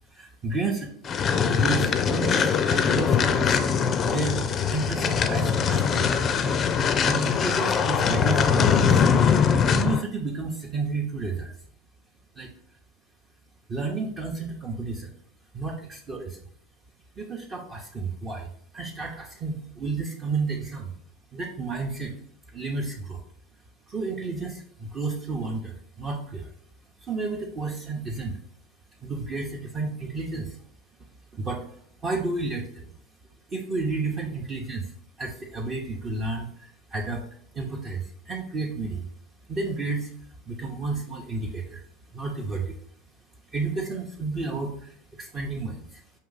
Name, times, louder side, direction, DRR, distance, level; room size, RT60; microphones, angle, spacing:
voice 1, 0.1-0.9 1.5-6.1 7.0-9.0 9.7-11.5 12.4-12.5 13.7-15.1 15.5-16.4 17.2-20.9 21.3-22.2 22.5-23.2 23.9-26.5 27.0-28.4 29.0-30.6 31.3-31.7 32.0-32.9 33.5-34.9 35.2-37.2 37.5-39.1 39.5-40.1 40.5-41.8 42.1-42.7 43.5-46.0, right 3 dB, 30° right, -1 dB, 0.7 m, -31 dB
sound 1, 1.1-10.0, left 7 dB, 35° left, 0.4 m, -22 dB
4.8 x 2.7 x 3.9 m, 0.62 s
hypercardioid pair, 90°, 0 cm